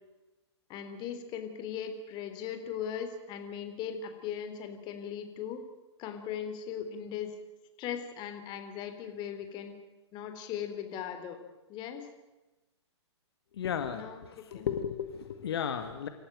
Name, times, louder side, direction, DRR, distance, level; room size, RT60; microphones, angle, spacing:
voice 1, 0.7-5.6 6.0-7.3 7.8-9.7 10.1-11.4 11.7-12.1 13.9-14.2 14.5-14.7, left 8 dB, 30° left, 7 dB, 3.4 m, -38 dB
voice 2, 13.6-16.1, left 8 dB, 60° left, 8 dB, 1.9 m, -34 dB
27.0 x 14.5 x 9.2 m, 1.1 s
figure-of-eight pair, 120°, 15 cm